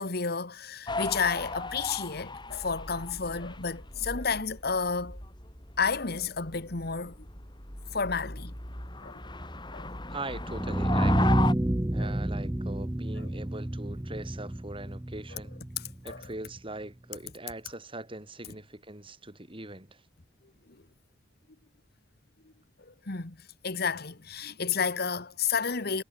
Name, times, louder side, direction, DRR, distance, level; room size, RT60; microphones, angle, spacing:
voice 1, 0.0-5.2 5.8-7.2 7.9-8.5 9.0-9.2 9.7-9.9 12.0-12.1 13.2-13.3 15.3-15.4 16.0-16.3 22.8-23.4 23.6-26.0, left 5 dB, 55° left, 1.6 m, -31 dB
sound 1, 0.9-11.5, left 3 dB, 25° left, 6.8 m, -37 dB
voice 2, 10.1-11.4 11.9-15.5 16.0-20.0, right 2 dB, 30° right, 5.1 m, -41 dB
sound 2, 10.4-16.4, right 1 dB, 10° right, 0.5 m, -29 dB
head